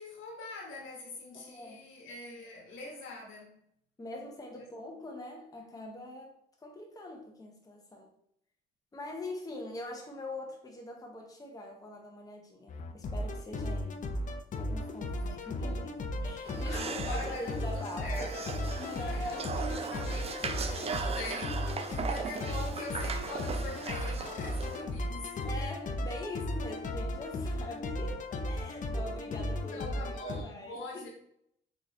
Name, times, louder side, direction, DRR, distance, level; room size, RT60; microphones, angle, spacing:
voice 1, 0.0-3.6 4.6-4.7 15.2-15.9 16.6-18.3 19.0-25.5 27.6-27.7 29.5-31.1, left 2 dB, 85° left, 1.0 m, -44 dB
voice 2, 1.3-1.9 4.0-8.1 8.9-14.1 14.6-18.1 18.8-20.1 20.8-21.2 21.8-22.2 25.4-31.0, left 1 dB, 20° left, 0.8 m, -43 dB
sound 1, 12.7-30.4, left 1 dB, 40° left, 0.4 m, -35 dB
sound 2, 16.4-24.8, right 5 dB, 30° right, 0.4 m, -39 dB
3.7 x 3.0 x 2.6 m
cardioid pair, 90°, 20 cm